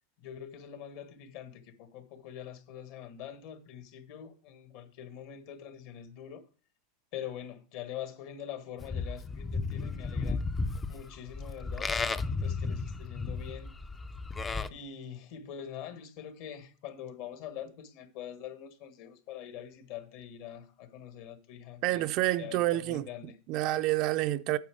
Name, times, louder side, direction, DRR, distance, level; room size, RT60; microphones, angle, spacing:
voice 1, 0.2-6.4 7.1-10.4 10.9-13.7 14.7-22.1 22.4-23.4, left 9 dB, 55° left, 1.5 m, -44 dB
Livestock farm animals working animals, 8.8-14.7, left 4 dB, 15° left, 0.4 m, -34 dB
voice 2, 21.8-23.1 23.5-24.6, right 16 dB, 45° right, 0.4 m, -28 dB
9.1 x 6.8 x 4.8 m
supercardioid pair, 150°, 0 cm